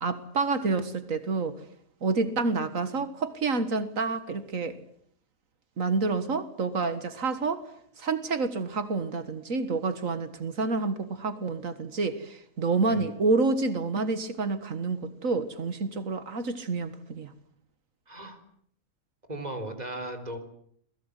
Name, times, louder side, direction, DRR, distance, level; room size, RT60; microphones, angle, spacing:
voice 1, 0.0-1.6 2.0-4.8 5.8-7.7 8.0-17.3, right 3 dB, 85° right, 11 dB, 2.1 m, -28 dB
voice 2, 18.1-18.4 19.3-20.4, right 1 dB, 30° right, 8 dB, 4.3 m, -37 dB
28.5 x 21.0 x 8.3 m, 0.65 s
omnidirectional pair, 1.4 m